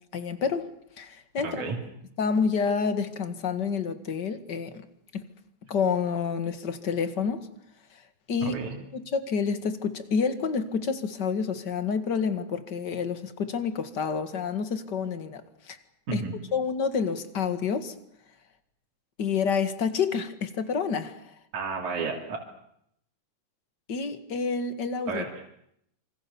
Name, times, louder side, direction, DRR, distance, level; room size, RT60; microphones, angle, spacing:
voice 1, 0.1-1.7 2.2-4.9 5.1-5.2 5.7-7.5 8.3-8.6 8.9-15.8 16.1-16.2 16.5-17.9 19.2-21.2 23.9-25.2, left 5 dB, 40° left, 2.0 m, -28 dB
voice 2, 1.4-1.8 8.4-8.7 16.1-16.3 21.5-22.4 25.1-25.5, right 4 dB, 75° right, 4.2 m, -32 dB
26.0 x 25.5 x 7.1 m
omnidirectional pair, 3.5 m